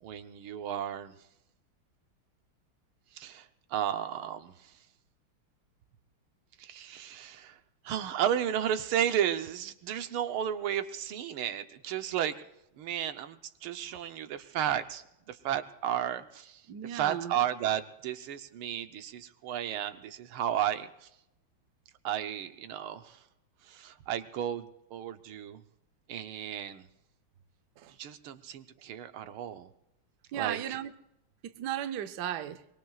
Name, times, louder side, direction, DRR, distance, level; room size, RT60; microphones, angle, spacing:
voice 1, 0.0-1.1 3.1-4.7 6.6-7.6 7.8-12.5 12.8-21.1 22.0-23.2 23.6-25.6 26.1-26.9 28.0-29.7 30.4-30.8, right 10 dB, 80° right, 1.7 m, -33 dB
voice 2, 16.7-17.3 27.8-27.9 30.3-30.9 31.4-32.6, right 11 dB, 65° right, 1.1 m, -35 dB
23.5 x 21.5 x 2.4 m
omnidirectional pair, 2.4 m